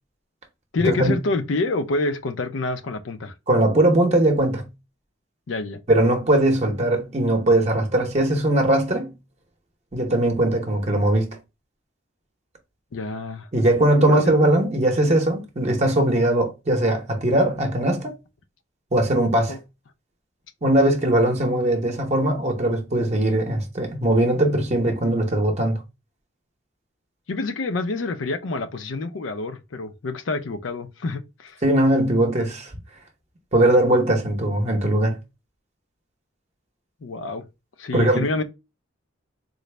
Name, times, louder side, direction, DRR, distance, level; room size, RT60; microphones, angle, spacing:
voice 1, 0.7-3.3 5.5-5.8 12.9-13.5 14.0-14.4 19.5-19.6 27.3-31.6 37.0-37.4 37.8-38.4, left 3 dB, 70° left, 0.5 m, -27 dB
voice 2, 3.5-4.7 5.9-9.1 9.9-11.4 13.5-18.2 18.9-19.6 20.6-25.8 31.6-32.7 33.5-35.2 37.9-38.3, right 1 dB, 35° right, 0.7 m, -20 dB
3.8 x 2.0 x 3.2 m
head